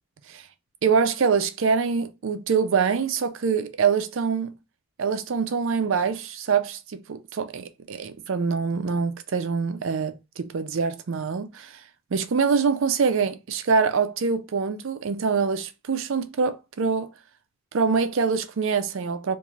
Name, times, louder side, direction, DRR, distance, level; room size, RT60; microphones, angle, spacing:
voice 1, 0.8-4.5 5.0-11.8 12.1-17.1 17.7-19.4, right 5 dB, 65° right, 0.4 m, -25 dB
3.1 x 2.6 x 2.3 m
head